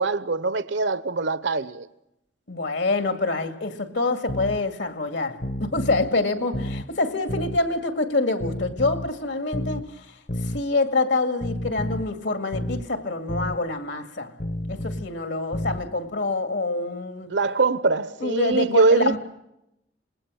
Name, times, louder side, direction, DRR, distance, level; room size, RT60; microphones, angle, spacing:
voice 1, 0.0-1.9 17.3-19.2, right 3 dB, 80° right, 1.0 m, -22 dB
voice 2, 2.5-10.1 10.4-14.4 14.7-17.3 18.2-19.2, left 3 dB, 80° left, 2.2 m, -26 dB
sound 1, 4.3-4.6 5.4-6.1 6.5-6.9 7.3-7.6 8.4-9.1 9.5-9.9 10.3-10.6 11.4-12.1 12.5-12.9 13.3-13.6 14.4-15.1 15.5-15.9, left 1 dB, 50° left, 0.9 m, -30 dB
26.5 x 20.5 x 6.4 m
head